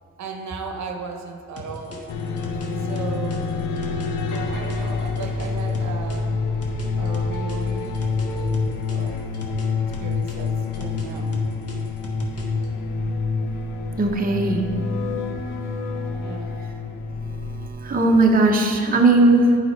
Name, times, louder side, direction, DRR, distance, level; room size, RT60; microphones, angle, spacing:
voice 1, 0.2-2.0 2.8-3.5 4.5-6.4 7.0-9.3 9.8-11.4 16.1-16.6, right 5 dB, 65° right, 4 dB, 0.9 m, -36 dB
sound 1, 1.6-6.2 6.6-9.7 9.9-12.7, left 2 dB, 50° left, 1.5 m, -39 dB
sound 2, 2.1-17.7, left 4 dB, 90° left, 0.6 m, -27 dB
voice 2, 14.0-14.6 16.6-16.7 17.2-19.6, right 2 dB, 30° right, 1 dB, 0.9 m, -18 dB
9.1 x 5.0 x 4.5 m, 2.4 s
cardioid pair, 90°, 30 cm